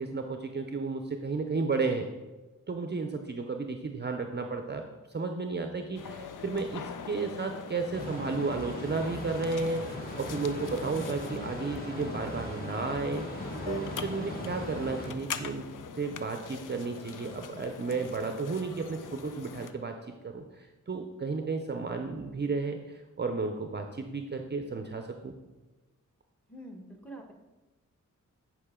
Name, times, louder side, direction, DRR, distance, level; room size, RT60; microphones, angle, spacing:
voice 1, 0.0-2.1 2.7-15.7 15.9-25.3, right 4 dB, 35° right, 5 dB, 0.6 m, -33 dB
sound 1, 5.9-19.7, left 7 dB, 85° left, 0.5 m, -43 dB
sound 2, 7.9-15.1, left 1 dB, 30° left, 1.6 m, -39 dB
voice 2, 26.5-27.3, right 1 dB, 5° left, 3 dB, 1.2 m, -45 dB
9.9 x 4.9 x 3.7 m, 1.1 s
wide cardioid pair, 80°, 31 cm